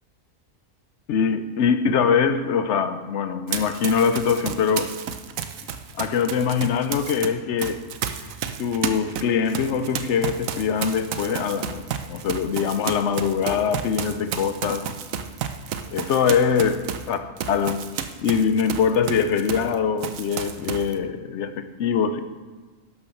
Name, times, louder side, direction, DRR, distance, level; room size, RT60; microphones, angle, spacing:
voice 1, 1.1-5.0 6.0-7.8 8.6-14.9 15.9-17.8 18.2-22.2, left 6 dB, 65° left, 0.8 m, -23 dB
Run, 3.5-7.3 7.6-19.7 20.0-20.9, right 8 dB, 90° right, 1.1 m, -32 dB
11.5 x 7.0 x 5.7 m
omnidirectional pair, 1.4 m